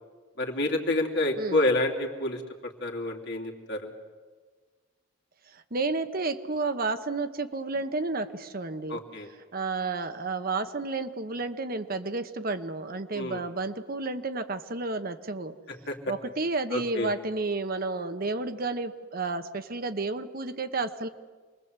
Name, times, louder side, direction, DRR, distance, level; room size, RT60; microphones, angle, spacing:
voice 1, 0.4-3.9 8.9-9.3 13.1-13.4 15.7-16.0 16.7-17.1, left 2 dB, 55° left, 2 dB, 3.1 m, -29 dB
voice 2, 5.7-9.0 9.5-15.5 16.1-21.1, right 3 dB, 45° right, 9 dB, 1.1 m, -31 dB
28.0 x 21.5 x 8.2 m, 1.4 s
head